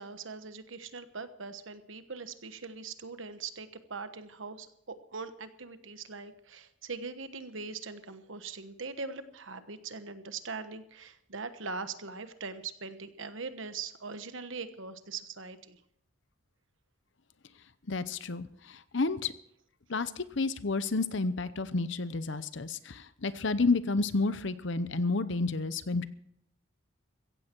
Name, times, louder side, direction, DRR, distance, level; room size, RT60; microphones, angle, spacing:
voice 1, 0.0-15.8, right 4 dB, 70° right, 10 dB, 1.2 m, -41 dB
voice 2, 17.9-19.3 19.9-26.1, left 3 dB, 60° left, 14 dB, 0.8 m, -30 dB
15.5 x 15.0 x 4.6 m, 0.72 s
head